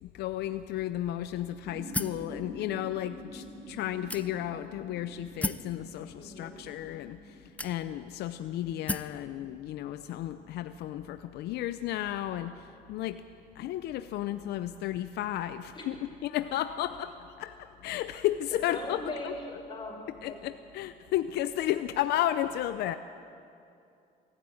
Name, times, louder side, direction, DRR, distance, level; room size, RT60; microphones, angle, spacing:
voice 1, 0.0-13.2 13.6-16.0 16.2-19.3 20.2-23.0, left 12 dB, 75° left, 11 dB, 0.6 m, -33 dB
sound 1, 1.6-10.8, equal, 55° right, 4.8 m, -48 dB
sound 2, 1.9-2.3 3.1-3.2 4.1-4.6 5.4-5.7 6.7-6.8 7.6-8.1 8.9-9.2, left 2 dB, 10° left, 0.6 m, -34 dB
voice 2, 6.2-6.6 15.7-15.8 18.7-20.4, left 2 dB, 30° left, 1 dB, 5.1 m, -40 dB
21.5 x 13.0 x 9.6 m, 2.6 s
cardioid pair, 110°, 17 cm